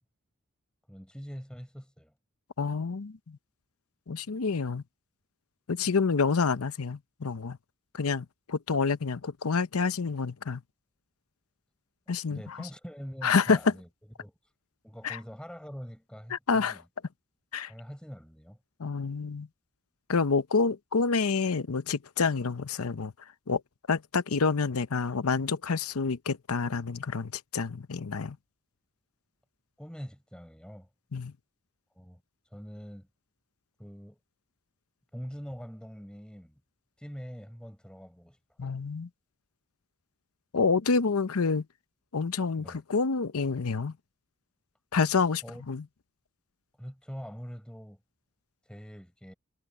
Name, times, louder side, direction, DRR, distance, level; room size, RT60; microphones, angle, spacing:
voice 1, 0.9-2.1 12.3-13.9 14.2-14.3 14.8-16.9 17.7-18.6 29.8-30.9 31.9-32.2 32.5-33.1 33.8-34.2 35.1-36.6 37.0-38.8 42.6-42.8 45.4-45.6 46.8-48.0 48.7-49.3, equal, 5° left, 6.0 m, -44 dB
voice 2, 2.6-3.4 4.1-4.8 5.7-7.6 7.9-10.6 12.1-12.6 13.2-13.7 15.0-15.2 16.3-16.8 17.5-17.7 18.8-19.5 20.1-23.1 23.5-23.6 23.9-28.4 31.1-31.3 38.6-39.1 40.5-41.6 42.1-43.9 44.9-45.8, left 4 dB, 85° left, 0.7 m, -28 dB
head